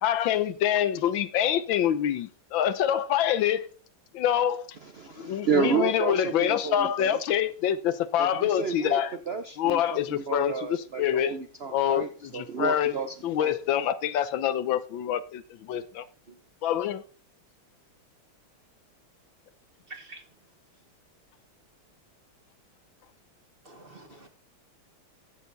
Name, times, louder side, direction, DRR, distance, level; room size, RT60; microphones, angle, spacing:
voice 1, 0.0-3.7 4.1-4.7 5.2-9.2 9.6-11.3 11.7-12.9 13.2-16.0 16.6-17.0, left 10 dB, 75° left, 1.4 m, -26 dB
voice 2, 4.8-7.2 8.2-9.0 9.3-13.5, right 6 dB, 75° right, 0.5 m, -31 dB
voice 3, 19.9-20.2 23.6-24.3, right 3 dB, 30° right, 1.5 m, -46 dB
15.0 x 6.6 x 4.0 m
omnidirectional pair, 2.2 m